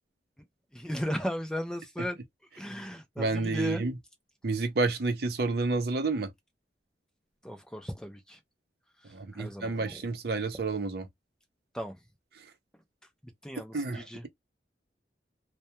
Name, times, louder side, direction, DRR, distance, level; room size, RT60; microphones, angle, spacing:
voice 1, 0.7-2.2 2.6-3.8 7.4-8.4 9.3-10.0 11.7-11.9 13.4-14.2, equal, 5° left, 0.4 m, -36 dB
voice 2, 3.2-3.9 4.4-6.3 9.1-11.1 13.7-14.3, right 3 dB, 60° right, 0.6 m, -30 dB
2.2 x 2.2 x 2.7 m
head